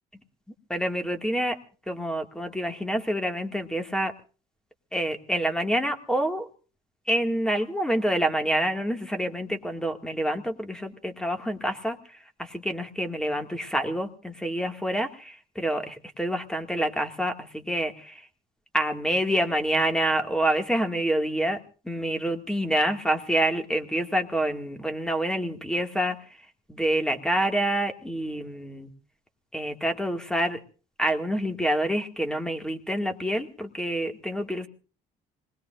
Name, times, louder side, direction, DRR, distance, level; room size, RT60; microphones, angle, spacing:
voice 1, 0.7-1.6 1.9-4.1 4.9-6.5 7.1-12.0 12.4-18.2 18.7-21.6 21.9-26.2 26.7-28.9 29.5-30.6 31.0-34.7, right 1 dB, 5° left, 5 dB, 2.1 m, -27 dB
26.0 x 20.0 x 2.6 m, 0.38 s
cardioid pair, 110°, 17 cm